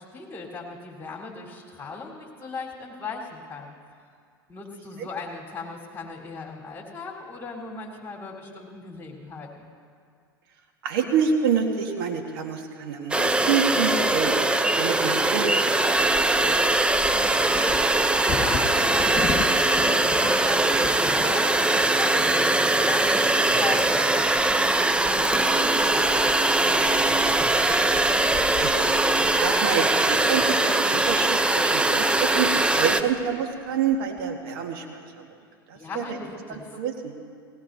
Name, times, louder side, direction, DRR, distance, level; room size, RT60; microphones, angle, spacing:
voice 1, 0.0-3.7 4.5-9.7 17.1-27.0 35.7-36.8, left 4 dB, 15° left, -2 dB, 4.0 m, -38 dB
voice 2, 10.8-14.4 14.8-15.8 16.1-16.5 28.5-29.0 29.4-34.8 35.9-36.0 36.5-37.1, right 6 dB, 65° right, 3 dB, 1.6 m, -27 dB
sound 1, 13.1-33.0, right 2 dB, 10° right, 0.6 m, -21 dB
Bird vocalization bird call bird song / Wind / Thunder, 15.9-31.7 32.4-32.5 32.8-33.2 33.7-34.2, left 6 dB, 35° left, 1.7 m, -39 dB
19.5 x 19.0 x 2.8 m, 2.2 s
hypercardioid pair, 95°, 13 cm